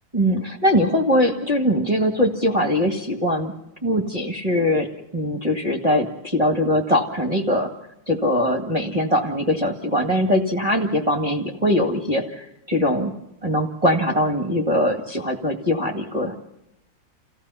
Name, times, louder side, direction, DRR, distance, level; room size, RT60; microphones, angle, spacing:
voice 1, 0.1-3.5 3.8-4.9 5.1-7.7 8.1-13.1 13.4-16.3, left 1 dB, 20° right, 0 dB, 1.7 m, -21 dB
29.5 x 16.0 x 5.7 m, 0.88 s
omnidirectional pair, 2.2 m